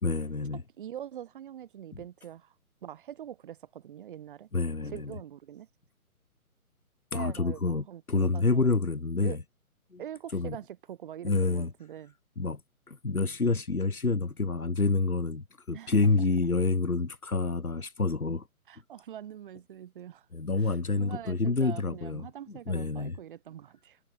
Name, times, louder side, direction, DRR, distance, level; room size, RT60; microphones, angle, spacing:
voice 1, 0.0-0.6 1.9-2.0 4.5-5.1 7.1-9.4 9.9-10.0 10.3-10.6 11.2-11.7 12.4-12.6 12.9-18.5 20.3-23.2, left 3 dB, 75° left, 3.7 m, -28 dB
voice 2, 0.8-2.5 2.8-4.5 4.8-5.7 7.1-8.7 9.2-9.4 10.0-12.1 15.7-15.9 18.7-20.3 20.6-24.0, right 10 dB, 35° right, 6.6 m, -44 dB
figure-of-eight pair, 140°, 44 cm